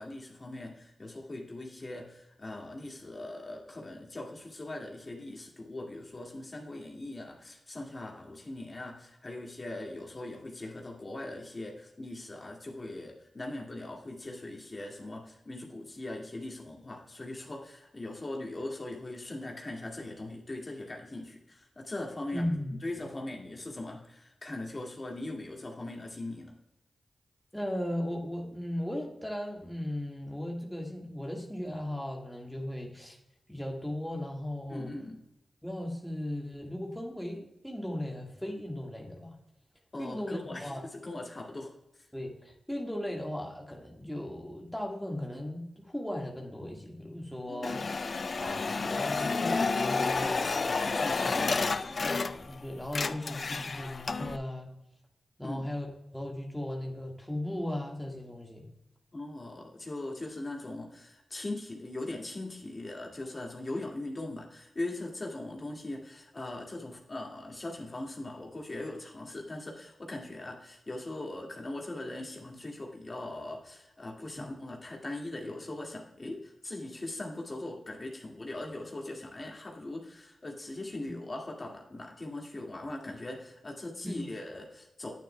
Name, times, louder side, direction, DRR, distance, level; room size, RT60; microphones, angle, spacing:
voice 1, 0.0-22.4 22.8-26.5 34.7-35.2 39.9-42.1 47.5-48.0 50.2-52.0 55.4-55.7 59.1-85.1, left 2 dB, 40° left, 0 dB, 2.0 m, -40 dB
voice 2, 22.3-22.8 27.5-33.2 33.5-34.9 35.6-39.4 40.0-40.8 42.1-47.8 48.4-50.3 51.0-51.3 52.0-54.7 55.4-55.9 56.1-58.7 74.4-74.5 84.0-84.2, left 1 dB, 5° left, 0 dB, 1.6 m, -37 dB
sound 1, 47.6-52.6 52.8-54.4, left 4 dB, 60° left, 0.4 m, -30 dB
9.3 x 9.0 x 2.2 m, 0.84 s
cardioid pair, 40°, 0 cm